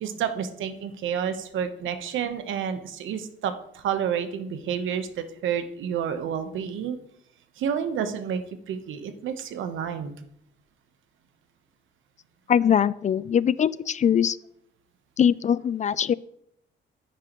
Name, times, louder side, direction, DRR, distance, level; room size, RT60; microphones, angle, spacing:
voice 1, 0.0-7.0 7.6-10.1, right 8 dB, 80° right, 9 dB, 1.1 m, -30 dB
voice 2, 12.5-14.4 15.2-16.1, left 8 dB, 40° left, 19 dB, 0.4 m, -22 dB
9.9 x 9.3 x 3.1 m, 0.74 s
cardioid pair, 90°, 20 cm